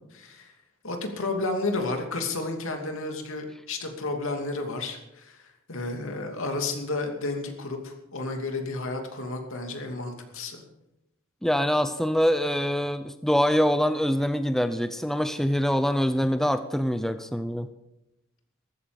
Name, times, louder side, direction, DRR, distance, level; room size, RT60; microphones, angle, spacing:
voice 1, 0.1-0.5 0.8-5.4 5.7-10.6, left 2 dB, 65° left, 3 dB, 2.8 m, -32 dB
voice 2, 11.4-17.7, equal, ahead, 10 dB, 0.6 m, -24 dB
14.5 x 14.0 x 5.2 m, 0.90 s
head